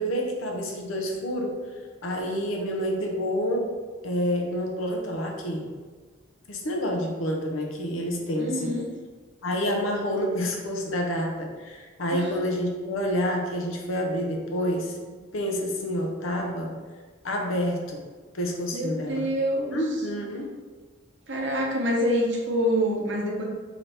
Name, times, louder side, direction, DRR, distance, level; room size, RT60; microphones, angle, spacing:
voice 1, 0.0-1.6 2.0-3.7 4.0-5.7 6.5-8.7 9.4-16.7 17.2-18.0 18.3-19.3 19.7-20.5, equal, 85° left, 1 dB, 0.7 m, -28 dB
voice 2, 8.4-8.9 12.1-12.3 18.7-19.8 21.3-23.4, equal, 60° right, -1 dB, 0.8 m, -26 dB
3.3 x 2.9 x 4.1 m, 1.5 s
head